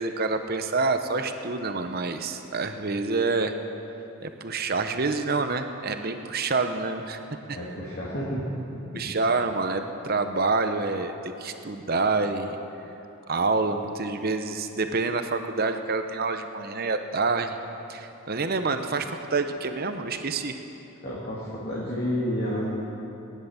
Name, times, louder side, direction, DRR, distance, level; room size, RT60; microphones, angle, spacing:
voice 1, 0.0-3.5 4.2-7.2 7.5-7.6 8.9-12.6 13.3-17.6 17.9-20.6, right 3 dB, 45° right, 7 dB, 0.9 m, -27 dB
voice 2, 7.5-8.4 8.7-9.0 21.0-22.9, equal, 45° left, -7 dB, 2.3 m, -30 dB
18.5 x 10.5 x 7.1 m, 2.9 s
head